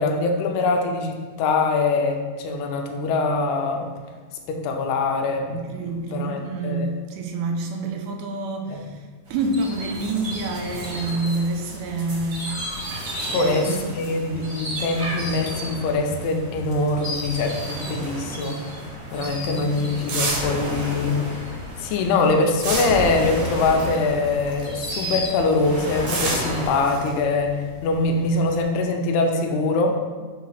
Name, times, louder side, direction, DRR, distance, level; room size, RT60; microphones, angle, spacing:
voice 1, 0.0-3.9 4.5-5.6 6.1-6.9 8.7-8.8 13.3-18.6 19.1-21.2 21.8-30.0, left 3 dB, 80° left, 2 dB, 2.4 m, -23 dB
voice 2, 5.5-12.6 13.3-14.0 19.2-20.0, right 3 dB, 85° right, 3 dB, 2.7 m, -28 dB
sound 1, 9.3-26.8, equal, 40° right, 1.4 m, -33 dB
sound 2, 18.8-24.9 25.2-28.6, right 2 dB, 65° right, 2.2 m, -31 dB
7.2 x 2.8 x 5.6 m, 1.4 s
omnidirectional pair, 5.2 m